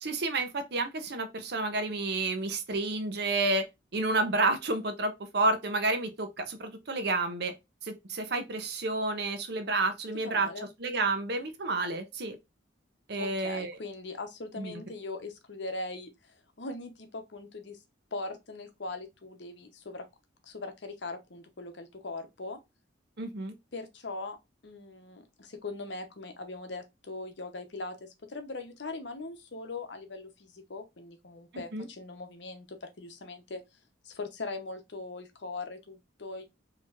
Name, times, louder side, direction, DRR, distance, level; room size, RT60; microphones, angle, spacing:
voice 1, 0.0-3.7 3.9-7.5 7.8-10.5 10.8-12.4 13.1-13.8 14.6-14.7 23.2-23.5 31.5-31.9, right 2 dB, 60° right, 0.7 m, -30 dB
voice 2, 10.2-10.7 13.2-17.8 18.1-20.1 20.4-22.6 23.7-24.4 24.6-33.6 34.0-36.4, left 3 dB, 65° left, 0.8 m, -40 dB
4.5 x 3.0 x 2.4 m
head